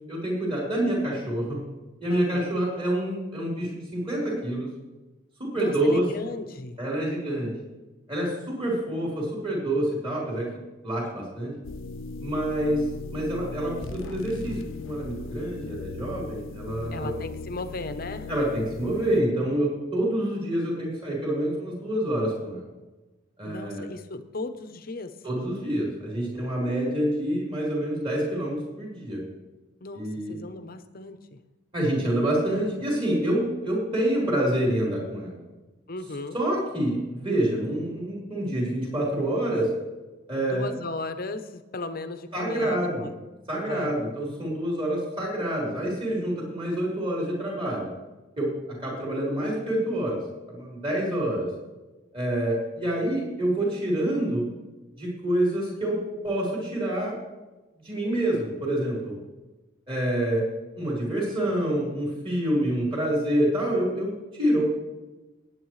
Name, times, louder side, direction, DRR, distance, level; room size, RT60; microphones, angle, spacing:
voice 1, 0.1-1.6 2.0-4.7 5.4-6.1 6.8-7.5 8.1-10.5 10.8-11.5 12.2-12.8 13.1-17.1 18.3-22.6 23.4-23.9 25.2-29.2 29.9-30.3 31.7-35.4 36.3-39.7 40.3-40.7 42.3-43.1 43.5-47.9 48.4-50.2 50.5-51.5 52.1-54.5 55.0-57.2 57.8-59.2 59.9-60.5 60.8-64.6, right 1 dB, 25° right, -4 dB, 4.2 m, -27 dB
voice 2, 2.1-2.5 5.6-6.8 16.9-18.3 23.4-25.1 29.8-31.4 35.9-36.3 40.4-43.1 43.7-43.9, left 2 dB, 45° left, 9 dB, 0.8 m, -36 dB
sound 1, 11.6-19.2, left 3 dB, 75° left, 0.5 m, -38 dB
18.5 x 9.4 x 3.2 m, 1.1 s
head